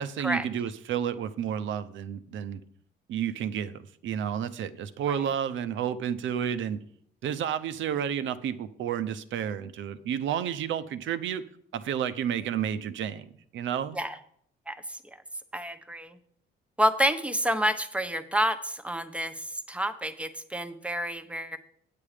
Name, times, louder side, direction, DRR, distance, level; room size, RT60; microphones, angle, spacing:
voice 1, 0.0-2.6 3.1-6.8 7.2-11.4 11.7-13.2 13.5-14.0, right 9 dB, 75° right, 12 dB, 0.7 m, -31 dB
voice 2, 14.7-15.0 15.5-16.2 16.8-21.6, equal, 5° right, 8 dB, 0.9 m, -29 dB
8.7 x 8.5 x 5.0 m, 0.64 s
cardioid pair, 90°, 20 cm